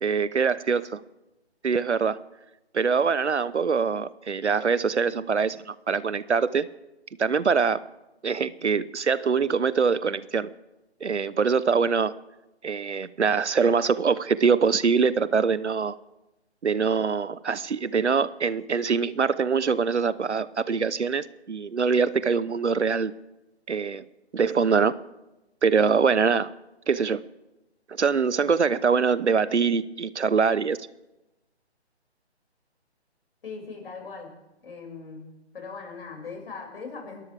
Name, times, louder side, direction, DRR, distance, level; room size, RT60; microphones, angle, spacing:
voice 1, 0.0-1.0 1.6-2.2 2.7-6.7 7.2-7.8 8.2-10.5 11.0-12.1 12.6-16.0 16.6-23.1 23.7-24.0 24.3-25.0 25.6-26.5 26.9-27.2 27.9-30.8, right 5 dB, 85° right, 17 dB, 0.9 m, -23 dB
voice 2, 33.4-34.3 34.6-35.3 35.5-37.2, left 4 dB, 55° left, 1 dB, 6.1 m, -39 dB
29.0 x 12.5 x 3.5 m, 0.96 s
figure-of-eight pair, 145°, 34 cm